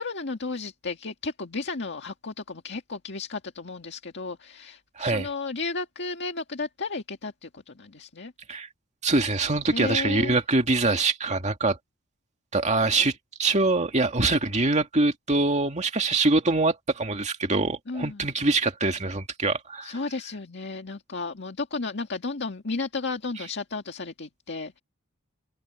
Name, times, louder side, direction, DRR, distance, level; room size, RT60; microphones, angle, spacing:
voice 1, 0.0-8.3 9.7-10.4 17.9-18.2 19.8-24.8, left 3 dB, 55° left, 1.9 m, -33 dB
voice 2, 5.0-5.3 8.5-8.7 9.0-11.8 12.5-20.0, right 3 dB, 35° right, 2.2 m, -24 dB
head